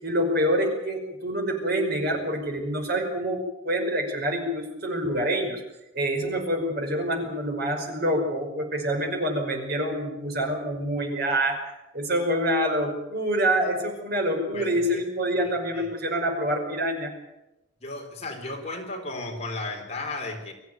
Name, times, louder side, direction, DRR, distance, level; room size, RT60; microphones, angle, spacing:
voice 1, 0.0-3.4 3.6-5.6 5.9-11.6 11.9-17.1, right 1 dB, 50° right, 3 dB, 5.4 m, -26 dB
voice 2, 14.5-15.0 15.7-15.8 17.8-20.5, left 2 dB, 35° left, 2 dB, 4.1 m, -34 dB
23.5 x 15.0 x 9.3 m, 0.92 s
head